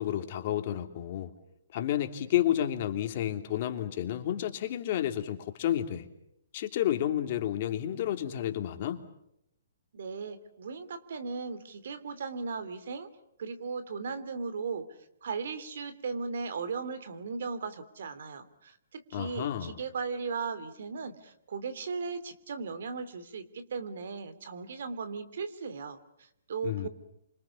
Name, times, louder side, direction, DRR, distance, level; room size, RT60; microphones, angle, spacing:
voice 1, 0.0-1.3 1.7-6.1 6.5-9.0 19.1-19.8 26.6-26.9, left 11 dB, 45° left, 6 dB, 3.1 m, -31 dB
voice 2, 9.9-13.1 13.4-14.9 15.2-26.9, right 5 dB, 65° right, 12 dB, 3.0 m, -37 dB
29.5 x 26.0 x 7.2 m, 0.78 s
hypercardioid pair, 140°, 0 cm